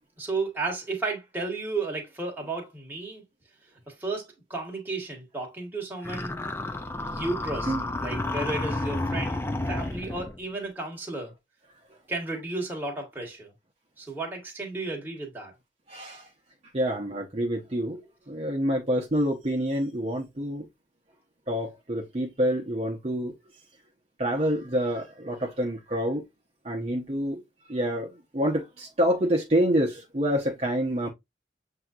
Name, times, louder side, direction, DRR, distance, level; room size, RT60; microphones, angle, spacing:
voice 1, 0.2-3.2 3.9-6.3 7.1-7.7 8.0-9.4 9.7-11.3 12.1-13.5 14.0-15.5, right 3 dB, 10° right, 1.5 m, -33 dB
sound 1, 6.0-10.4, left 2 dB, 15° left, 0.4 m, -31 dB
voice 2, 15.9-16.3 16.7-20.7 21.5-23.3 24.2-26.2 26.6-27.4 27.7-31.1, equal, 35° right, 0.9 m, -27 dB
7.5 x 2.7 x 2.5 m
head